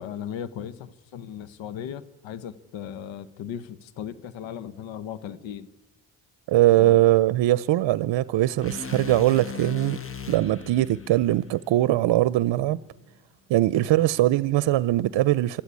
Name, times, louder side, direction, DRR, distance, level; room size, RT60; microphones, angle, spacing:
voice 1, 0.0-5.7 6.8-7.0, left 9 dB, 90° left, 1.0 m, -37 dB
voice 2, 6.5-10.0 10.3-12.8 13.5-15.6, right 15 dB, 75° right, 0.7 m, -21 dB
sound 1, 8.6-12.8, left 6 dB, 30° left, 1.2 m, -39 dB
25.5 x 13.5 x 9.7 m
cardioid pair, 70°, 44 cm